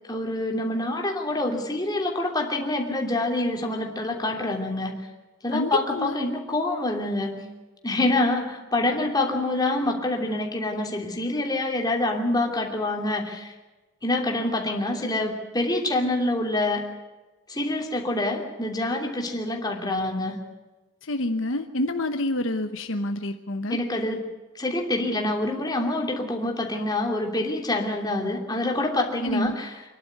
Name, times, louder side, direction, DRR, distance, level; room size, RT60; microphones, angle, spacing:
voice 1, 0.1-5.0 5.4-7.4 7.8-13.5 14.0-16.9 17.5-20.4 23.7-24.2 24.5-29.8, left 2 dB, 20° left, 1 dB, 3.0 m, -26 dB
voice 2, 5.5-6.1 21.1-23.8 29.2-29.5, left 1 dB, 65° left, 7 dB, 1.1 m, -27 dB
25.5 x 11.5 x 9.4 m, 1.2 s
head